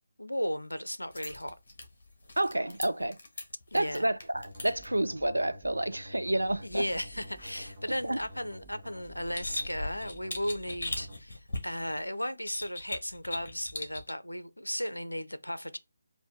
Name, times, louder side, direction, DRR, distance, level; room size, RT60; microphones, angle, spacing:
voice 1, 0.2-1.6 3.7-4.1 6.6-15.8, equal, 85° left, 0.5 m, -35 dB
sound 1, 1.0-4.9 6.7-8.3 8.9-12.0 12.5-14.1, left 2 dB, 50° left, 1.5 m, -41 dB
voice 2, 2.4-3.2 3.7-6.8 8.0-8.2, right 1 dB, 80° right, 0.3 m, -29 dB
sound 2, 4.3-11.2, equal, 30° right, 1.1 m, -49 dB
4.4 x 2.6 x 3.4 m
figure-of-eight pair, 150°, 0 cm